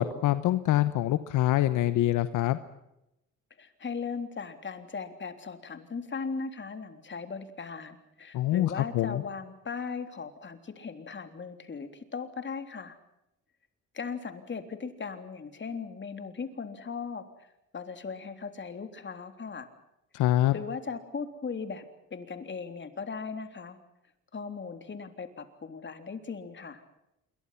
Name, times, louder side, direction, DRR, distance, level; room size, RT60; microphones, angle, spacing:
voice 1, 0.0-2.6 8.3-9.2 20.1-20.6, left 14 dB, 90° left, 12 dB, 1.1 m, -25 dB
voice 2, 3.6-13.0 13.9-17.3 17.7-19.7 20.5-21.8 22.1-23.8 24.3-26.8, left 5 dB, 40° left, 8 dB, 3.5 m, -38 dB
27.5 x 23.0 x 5.8 m, 0.85 s
cardioid pair, 90°, 30 cm